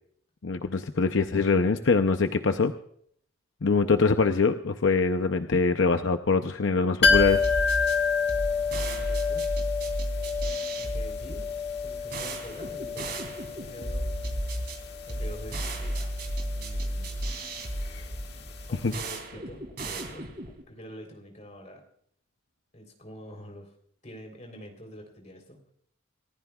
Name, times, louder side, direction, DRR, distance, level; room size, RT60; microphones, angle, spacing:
voice 1, 0.4-2.7 3.6-7.4 18.8-18.9, left 4 dB, 70° left, 7 dB, 0.7 m, -23 dB
sound 1, 7.0-18.6 18.9-19.0, left 5 dB, 55° left, 1.9 m, -29 dB
sound 2, 7.0-20.6, right 1 dB, 50° right, 3.0 m, -34 dB
voice 2, 8.7-9.5 10.8-11.5 11.8-14.1 15.0-16.1 16.5-17.2 18.7-20.3 20.7-21.8 22.7-23.7 24.0-25.6, equal, 35° left, 3 dB, 3.6 m, -45 dB
29.0 x 14.5 x 2.4 m, 0.66 s
head